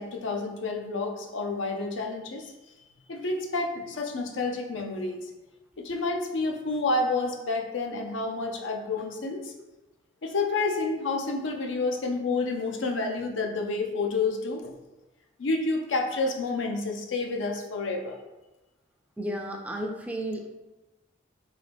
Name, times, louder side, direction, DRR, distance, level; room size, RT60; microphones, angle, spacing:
voice 1, 0.0-2.5 3.1-5.2 5.8-9.5 10.2-14.8 15.4-18.2, left 3 dB, 85° left, 3 dB, 0.5 m, -29 dB
voice 2, 19.2-20.5, right 1 dB, 10° right, 2 dB, 0.3 m, -33 dB
3.8 x 2.9 x 3.3 m, 1.1 s
head